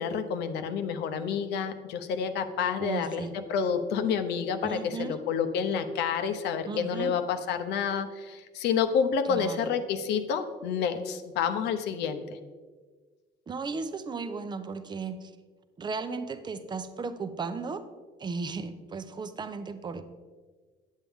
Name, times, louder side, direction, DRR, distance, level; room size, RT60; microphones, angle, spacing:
voice 1, 0.0-3.2 3.5-12.4, left 7 dB, 80° left, 8 dB, 0.7 m, -29 dB
voice 2, 2.8-3.3 4.6-5.2 6.7-7.1 9.3-9.7 13.5-15.3 15.8-17.8 18.2-20.0, right 4 dB, 25° right, 10 dB, 0.6 m, -35 dB
9.9 x 7.4 x 3.5 m, 1.4 s
cardioid pair, 110°, 17 cm